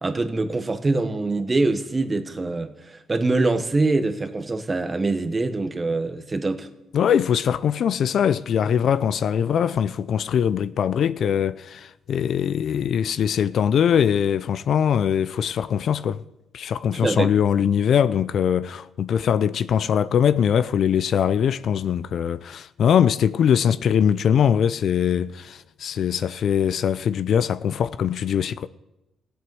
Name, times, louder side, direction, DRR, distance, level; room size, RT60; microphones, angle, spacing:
voice 1, 0.0-6.7 16.9-17.3, right 3 dB, 25° right, 1.3 m, -24 dB
voice 2, 6.9-16.2 16.5-28.7, left 8 dB, 65° left, 0.5 m, -22 dB
16.5 x 8.1 x 7.7 m
cardioid pair, 90°, 0 cm